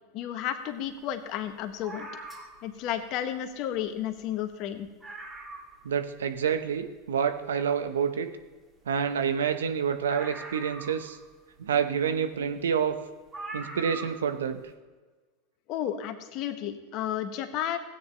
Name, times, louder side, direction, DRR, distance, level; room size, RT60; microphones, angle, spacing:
voice 1, 0.1-2.1 2.6-4.9 15.7-17.8, left 10 dB, 50° left, 8 dB, 1.2 m, -32 dB
sound 1, 1.8-2.7 3.8-3.9 4.2-4.3 4.7-4.8 5.0-5.8 6.3-6.4 10.1-11.4 12.5-12.6 13.3-14.3 14.6-14.7, right 2 dB, 20° right, 2.8 m, -41 dB
voice 2, 5.8-8.3 8.9-11.2 11.6-13.0 13.5-14.6, right 7 dB, 80° right, 9 dB, 0.8 m, -28 dB
16.0 x 9.2 x 3.3 m, 1.3 s
hypercardioid pair, 90°, 0 cm